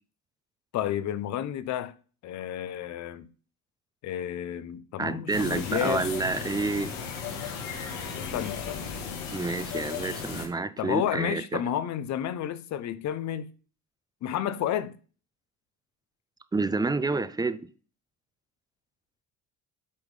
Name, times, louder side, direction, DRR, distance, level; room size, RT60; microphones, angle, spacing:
voice 1, 0.7-1.9 2.2-3.3 4.0-6.0 8.2-9.2 10.8-13.5 14.2-15.0, left 11 dB, 55° left, 0.7 m, -31 dB
voice 2, 5.0-6.9 9.3-11.6 16.5-17.7, right 3 dB, 10° right, 0.4 m, -29 dB
sound 1, 5.3-10.5, left 6 dB, 80° left, 1.7 m, -35 dB
8.6 x 3.6 x 4.9 m
supercardioid pair, 100°, 34 cm